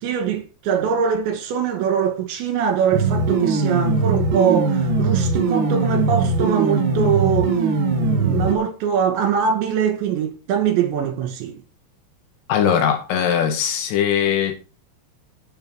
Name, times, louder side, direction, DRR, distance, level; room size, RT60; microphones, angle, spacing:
voice 1, 0.0-7.5 8.0-11.6, right 7 dB, 70° right, 4.5 m, -22 dB
sound 1, 2.9-8.5, right 3 dB, 50° right, 3.9 m, -20 dB
voice 2, 12.5-14.6, left 8 dB, 85° left, 4.8 m, -20 dB
12.5 x 8.7 x 4.8 m
omnidirectional pair, 5.6 m